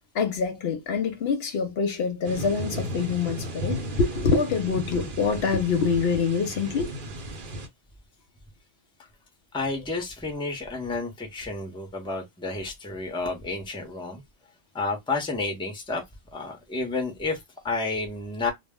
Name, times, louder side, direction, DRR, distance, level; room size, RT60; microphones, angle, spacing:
voice 1, 0.1-6.9, left 5 dB, 65° left, 0.8 m, -25 dB
sound 1, 2.2-7.7, right 1 dB, 55° right, 0.7 m, -35 dB
voice 2, 9.5-14.2 14.7-16.0 16.3-18.5, left 3 dB, 5° left, 0.6 m, -31 dB
2.1 x 2.0 x 3.4 m
omnidirectional pair, 1.2 m